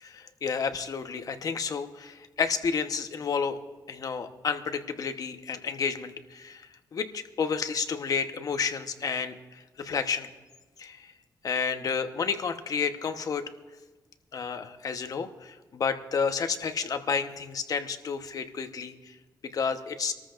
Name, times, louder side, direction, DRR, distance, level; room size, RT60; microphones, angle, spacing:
voice 1, 0.0-3.6 3.9-6.6 6.9-9.4 9.8-10.3 10.8-11.1 11.4-13.4 14.3-18.9 19.5-20.1, left 6 dB, 55° left, 7 dB, 1.1 m, -30 dB
24.5 x 13.5 x 2.5 m, 1.3 s
cardioid pair, 100°, 7 cm